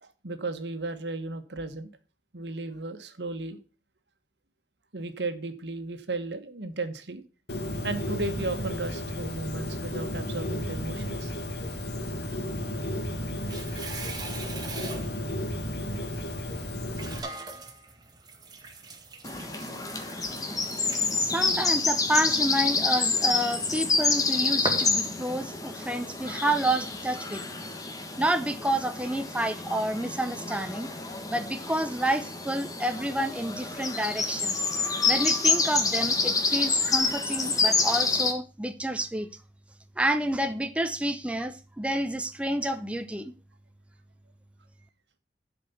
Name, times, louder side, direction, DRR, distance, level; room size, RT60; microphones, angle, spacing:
voice 1, 0.0-1.9 2.3-3.6 4.9-7.2 7.8-11.3, right 2 dB, 75° right, 1.4 m, -34 dB
Bird, 7.5-17.2, left 1 dB, 65° left, 1.7 m, -33 dB
sound 1, 13.1-15.4 16.2-16.3 16.9-24.2 24.6-27.0, right 3 dB, 25° right, 1.8 m, -41 dB
sound 2, 19.2-38.3, left 4 dB, 20° left, 1.5 m, -28 dB
voice 2, 21.2-27.4 28.2-30.9 31.3-34.6 35.1-39.3 40.0-43.3, right 1 dB, 5° right, 0.7 m, -29 dB
12.0 x 5.1 x 7.0 m
head